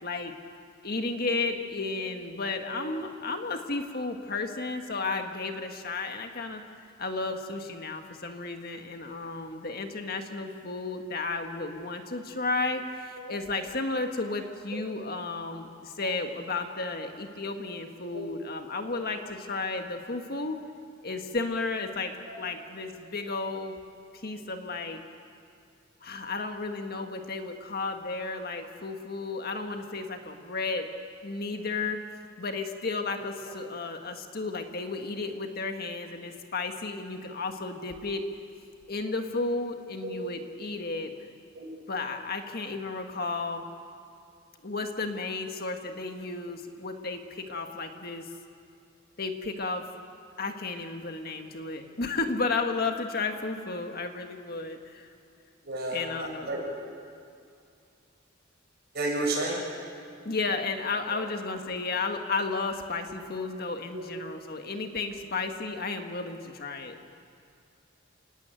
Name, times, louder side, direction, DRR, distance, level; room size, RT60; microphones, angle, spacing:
voice 1, 0.0-0.3 0.8-6.6 7.0-20.6 21.0-23.8 24.1-25.0 26.0-30.9 31.2-32.0 32.4-38.3 38.9-41.1 41.9-43.6 44.6-48.3 49.2-49.9 50.4-55.1 55.9-56.5 60.3-67.0, left 3 dB, 50° left, 5 dB, 1.7 m, -33 dB
voice 2, 55.7-56.6 58.9-59.6 63.1-63.2 63.9-64.0, right 2 dB, 55° right, -2 dB, 7.9 m, -32 dB
28.5 x 18.5 x 9.1 m, 2.4 s
head